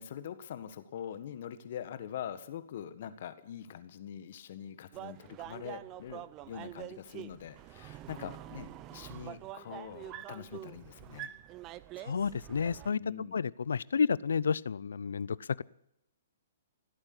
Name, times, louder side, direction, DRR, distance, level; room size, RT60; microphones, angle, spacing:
voice 1, 0.0-11.3 13.0-13.4, left 9 dB, 55° left, 12 dB, 1.6 m, -43 dB
sound 1, 4.9-12.9, right 14 dB, 30° right, 0.6 m, -46 dB
voice 2, 12.0-13.0 13.3-15.6, left 6 dB, 80° left, 23 dB, 0.5 m, -31 dB
16.5 x 8.7 x 9.8 m, 0.78 s
hypercardioid pair, 135°, 0 cm